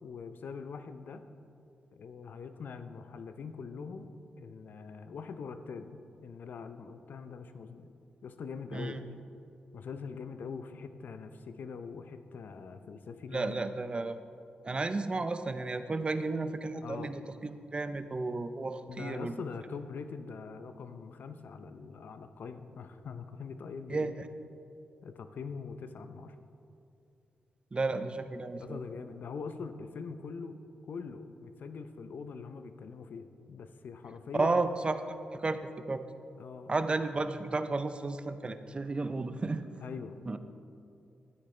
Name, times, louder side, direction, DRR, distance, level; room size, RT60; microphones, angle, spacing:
voice 1, 0.0-1.3 2.0-7.9 8.2-9.0 9.7-13.7 16.8-17.2 18.9-24.2 25.0-26.4 28.5-34.8 36.4-36.7 39.8-40.4, left 5 dB, 70° left, 9 dB, 0.6 m, -43 dB
voice 2, 8.7-9.0 13.3-14.2 14.6-19.3 23.9-24.3 27.7-28.8 34.4-35.6 35.9-36.0 36.7-39.6 40.3-40.4, right 3 dB, 30° right, 10 dB, 0.6 m, -33 dB
12.5 x 9.6 x 3.3 m, 2.6 s
cardioid pair, 70°, 3 cm